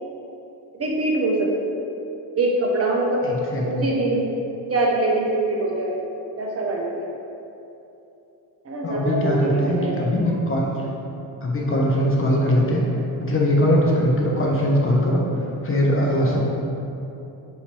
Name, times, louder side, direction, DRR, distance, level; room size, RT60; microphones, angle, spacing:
voice 1, 0.7-1.5 2.4-3.3 3.6-4.3 4.7-6.0 6.4-7.1 8.6-10.1 16.2-16.4, right 2 dB, 30° right, -2 dB, 0.5 m, -23 dB
voice 2, 3.2-3.9 8.8-11.0 11.4-12.8 13.2-15.2 15.6-16.5, equal, 25° left, -2 dB, 0.6 m, -21 dB
2.9 x 2.8 x 4.2 m, 2.9 s
supercardioid pair, 65°, 50 cm